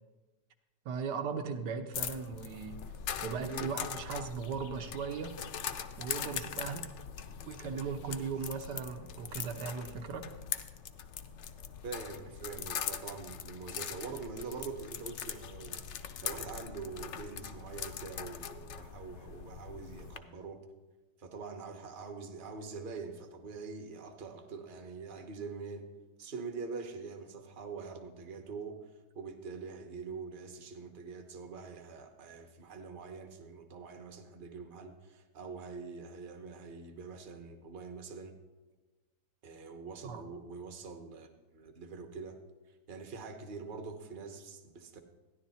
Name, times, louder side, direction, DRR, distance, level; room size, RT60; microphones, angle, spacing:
voice 1, 0.8-2.8 3.2-5.4 6.0-6.9 7.5-10.3 40.0-40.2, right 6 dB, 80° right, 6 dB, 1.4 m, -38 dB
sound 1, 1.9-20.2, left 8 dB, 70° left, 0.7 m, -41 dB
voice 2, 11.8-20.7 21.2-25.9 26.2-28.9 29.1-38.4 39.4-42.4 42.9-45.0, right 4 dB, 35° right, 4 dB, 0.9 m, -44 dB
14.5 x 10.5 x 4.1 m, 1.2 s
omnidirectional pair, 1.9 m